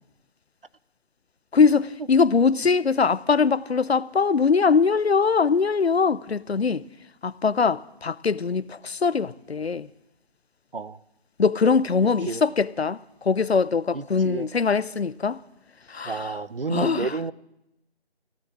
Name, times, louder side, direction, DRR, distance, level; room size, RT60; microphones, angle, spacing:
voice 1, 1.5-6.8 7.2-9.9 11.4-15.4 15.9-16.3 16.7-17.1, left 5 dB, 70° left, 0.7 m, -22 dB
voice 2, 13.9-14.5 16.0-17.3, right 4 dB, 60° right, 0.7 m, -30 dB
15.5 x 10.0 x 8.5 m
figure-of-eight pair, 175°, 32 cm